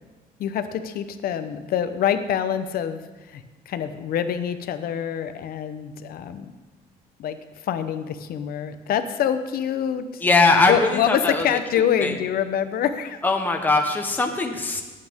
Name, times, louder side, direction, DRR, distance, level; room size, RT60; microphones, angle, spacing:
voice 1, 0.4-3.0 3.3-6.5 7.2-10.2 10.7-13.2, left 9 dB, 60° left, 10 dB, 0.9 m, -26 dB
voice 2, 10.2-11.6 12.0-12.2 13.2-14.8, left 3 dB, 10° left, 3 dB, 1.0 m, -20 dB
17.5 x 8.7 x 3.6 m, 1.2 s
cardioid pair, 110°, 17 cm